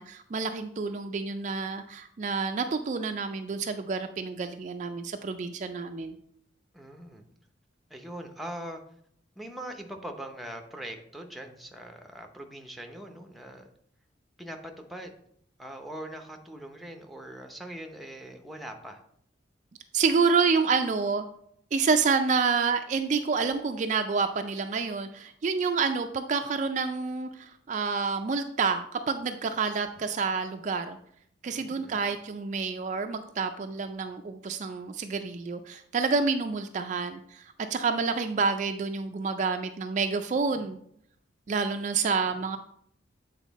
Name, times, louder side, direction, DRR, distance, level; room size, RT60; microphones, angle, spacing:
voice 1, 0.0-6.1 19.9-21.2 21.7-31.0 31.4-37.4 37.7-40.8 41.5-42.6, right 5 dB, 40° right, 7 dB, 0.3 m, -28 dB
voice 2, 6.7-7.2 7.9-8.8 9.4-13.7 14.4-15.1 15.6-19.0 31.5-32.0 42.3-42.4, right 1 dB, ahead, 4 dB, 0.6 m, -42 dB
8.2 x 4.1 x 4.0 m, 0.69 s
head